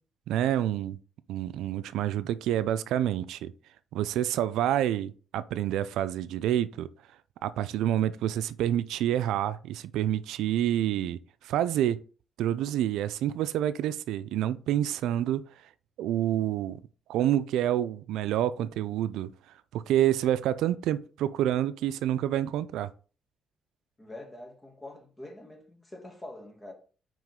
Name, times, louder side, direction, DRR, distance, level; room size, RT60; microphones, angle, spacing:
voice 1, 0.3-1.0 1.3-3.5 3.9-6.9 7.4-11.2 11.4-12.0 12.4-15.4 16.0-16.8 17.1-19.3 19.7-22.9, right 11 dB, 85° right, 0.4 m, -28 dB
voice 2, 24.0-26.7, left 1 dB, 20° left, 2.4 m, -45 dB
6.1 x 4.9 x 3.7 m
cardioid pair, 90°, 0 cm